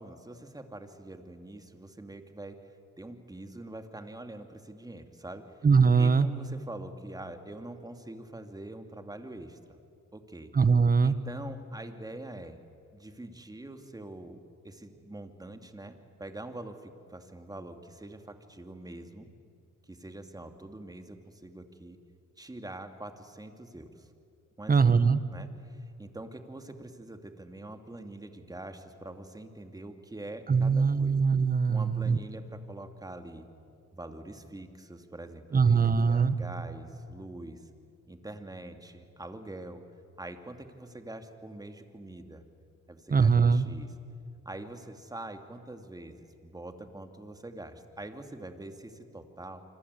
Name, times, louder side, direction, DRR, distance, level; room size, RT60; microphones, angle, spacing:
voice 1, 0.0-2.6 3.0-5.6 6.0-9.6 10.1-10.5 11.0-12.6 12.9-14.4 14.6-19.3 19.9-22.0 22.4-24.1 24.6-24.8 25.3-31.2 31.7-33.4 33.9-37.7 38.1-39.8 40.2-42.4 42.9-43.9 44.4-49.6, right 2 dB, 10° right, 6 dB, 2.6 m, -44 dB
voice 2, 5.6-6.3 10.5-11.1 24.7-25.2 30.5-32.2 35.5-36.3 43.1-43.6, right 5 dB, 30° right, 14 dB, 1.3 m, -22 dB
26.5 x 25.5 x 8.4 m, 2.4 s
cardioid pair, 90°, 30 cm